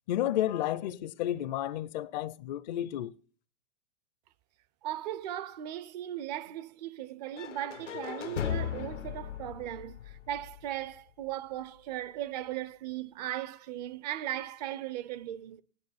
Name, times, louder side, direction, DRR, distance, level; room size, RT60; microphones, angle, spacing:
voice 1, 0.1-3.1, left 12 dB, 40° left, 0.5 m, -31 dB
voice 2, 4.8-15.6, right 12 dB, 35° right, 0.5 m, -37 dB
sound 1, 7.4-11.3, left 9 dB, 85° left, 0.7 m, -37 dB
16.5 x 9.9 x 4.1 m
hypercardioid pair, 115°, 35 cm